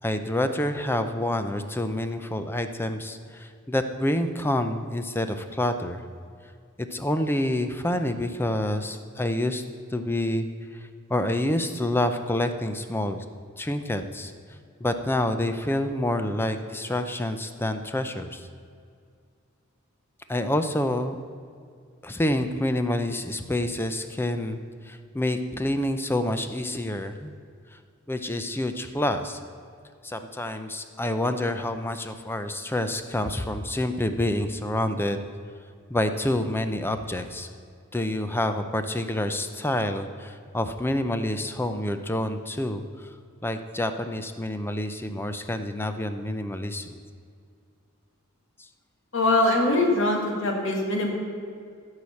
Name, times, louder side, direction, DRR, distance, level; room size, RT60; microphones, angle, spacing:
voice 1, 0.0-6.0 6.8-9.6 9.9-10.5 11.1-13.2 13.6-14.3 14.8-18.4 20.3-21.2 22.0-24.6 24.9-27.3 28.1-29.4 30.0-35.2 35.9-37.5 37.9-42.8 43.4-47.0, left 1 dB, 10° left, 9 dB, 0.6 m, -27 dB
voice 2, 49.1-51.1, left 2 dB, 65° left, 1 dB, 2.1 m, -22 dB
14.5 x 4.9 x 7.1 m, 2.3 s
head